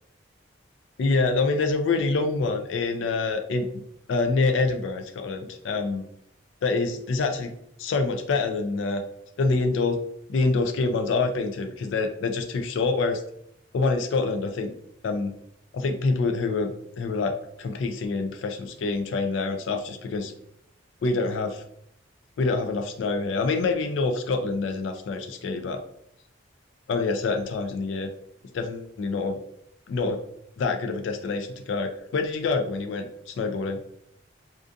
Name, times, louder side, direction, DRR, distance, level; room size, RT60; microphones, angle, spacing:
voice 1, 1.0-6.0 6.6-7.5 7.8-9.0 9.4-10.0 10.3-13.2 13.7-14.7 15.0-15.3 15.7-16.7 17.0-17.3 17.6-20.3 21.0-21.6 22.4-25.8 26.9-28.1 28.5-29.4 29.9-30.2 30.6-33.8, left 3 dB, 75° left, 5 dB, 0.3 m, -26 dB
2.5 x 2.3 x 2.5 m, 0.71 s
head